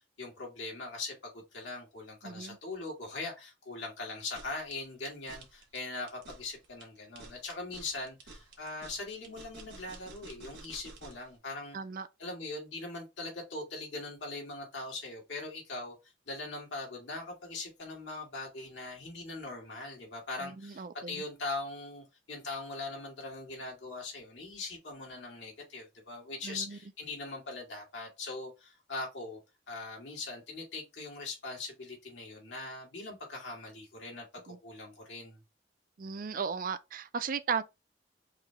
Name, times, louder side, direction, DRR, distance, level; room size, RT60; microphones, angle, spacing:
voice 1, 0.2-11.8 12.2-16.0 16.3-29.4 29.7-35.4, left 3 dB, 75° left, 2.3 m, -41 dB
voice 2, 2.2-2.6 11.7-12.1 20.4-21.2 26.4-26.8 34.5-34.6 36.0-37.6, right 6 dB, 50° right, 0.4 m, -36 dB
sound 1, 4.2-11.3, right 3 dB, 70° right, 1.4 m, -51 dB
4.8 x 2.9 x 3.4 m
head